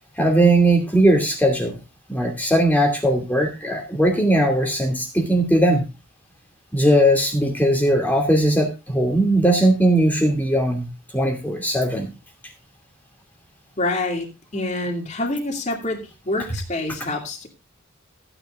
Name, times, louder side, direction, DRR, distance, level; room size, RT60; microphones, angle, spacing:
voice 1, 0.2-1.8 2.1-5.9 6.7-10.9 11.1-12.1, right 1 dB, 10° left, 2 dB, 2.5 m, -19 dB
voice 2, 13.8-14.3 14.5-17.5, left 2 dB, 35° left, 1 dB, 2.6 m, -26 dB
15.0 x 10.0 x 2.5 m, 0.27 s
head